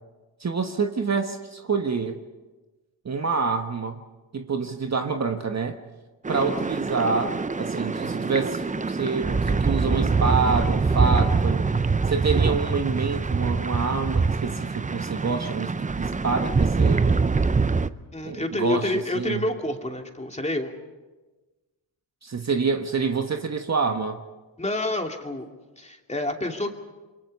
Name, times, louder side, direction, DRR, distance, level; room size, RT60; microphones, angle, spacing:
voice 1, 0.4-2.2 3.0-4.0 4.3-5.8 6.3-11.6 12.1-17.2 18.2-19.4 22.2-24.2, right 4 dB, 35° right, 6 dB, 1.3 m, -27 dB
sound 1, 6.3-17.9, right 4 dB, 15° right, 0.6 m, -24 dB
voice 2, 18.1-20.7 24.6-25.5 25.8-26.7, left 2 dB, 15° left, 3 dB, 2.7 m, -28 dB
28.5 x 22.5 x 5.5 m, 1.2 s
cardioid pair, 75°, 48 cm